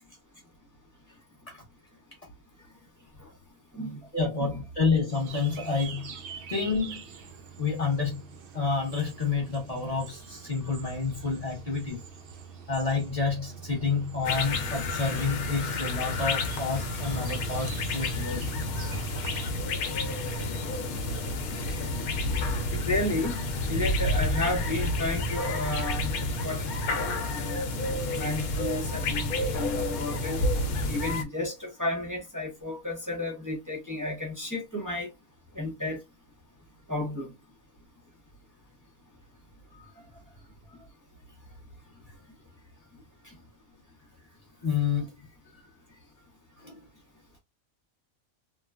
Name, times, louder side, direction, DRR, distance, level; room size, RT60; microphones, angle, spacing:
voice 1, 4.1-6.2 6.5-7.0 7.6-8.2 8.5-12.0 12.7-18.5 39.7-39.9 44.6-45.1 46.6-46.8, left 4 dB, 30° left, 0.8 m, -29 dB
sound 1, 5.1-19.5, right 8 dB, 80° right, 0.5 m, -44 dB
sound 2, 14.2-31.2, left 2 dB, 80° left, 1.1 m, -30 dB
voice 2, 22.7-23.3 23.7-27.7 28.1-30.5 30.8-35.1 35.5-36.0 36.9-37.3 43.2-43.4, left 2 dB, 20° right, 0.6 m, -32 dB
3.1 x 2.2 x 2.3 m
omnidirectional pair, 1.5 m